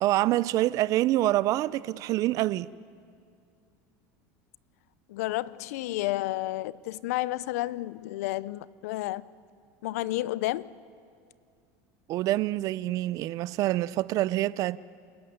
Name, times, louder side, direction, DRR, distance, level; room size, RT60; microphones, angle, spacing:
voice 1, 0.0-2.7 12.1-14.8, right 15 dB, 45° right, 0.5 m, -26 dB
voice 2, 5.1-9.2 9.8-10.7, left 17 dB, 80° left, 0.6 m, -31 dB
28.0 x 13.5 x 9.5 m
supercardioid pair, 140°, 8 cm